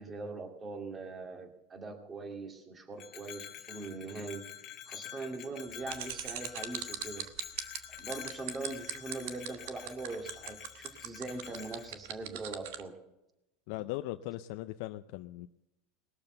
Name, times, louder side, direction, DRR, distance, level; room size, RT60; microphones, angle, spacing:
voice 1, 0.0-4.4 4.9-7.3 8.0-12.9, right 3 dB, 20° right, 4 dB, 2.4 m, -41 dB
Bell, 3.0-11.9, left 10 dB, 40° left, 1.4 m, -47 dB
sound 1, 5.9-12.8, right 13 dB, 70° right, 1.2 m, -39 dB
voice 2, 13.7-15.5, left 16 dB, 65° left, 8 dB, 0.5 m, -39 dB
19.5 x 6.9 x 7.8 m, 0.92 s
supercardioid pair, 110°, 0 cm